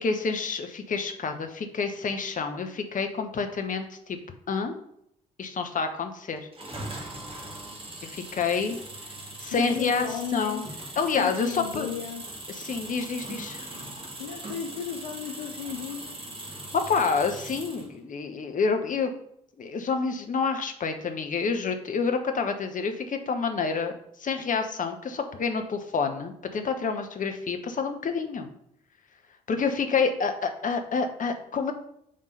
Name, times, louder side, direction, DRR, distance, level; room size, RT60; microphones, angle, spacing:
voice 1, 0.0-4.2 4.5-4.7 5.4-6.4 8.1-8.8 9.4-10.6 11.0-11.9 12.5-13.7 16.7-19.1 19.6-23.9 24.2-28.5 29.5-31.7, left 5 dB, 45° left, 6 dB, 1.0 m, -28 dB
sound 1, 6.5-17.9, right 1 dB, 30° right, 1.9 m, -40 dB
voice 2, 9.5-12.2 14.2-16.2, left 8 dB, 85° left, 2 dB, 0.5 m, -35 dB
5.0 x 3.6 x 5.6 m, 0.73 s
figure-of-eight pair, 40°, 19 cm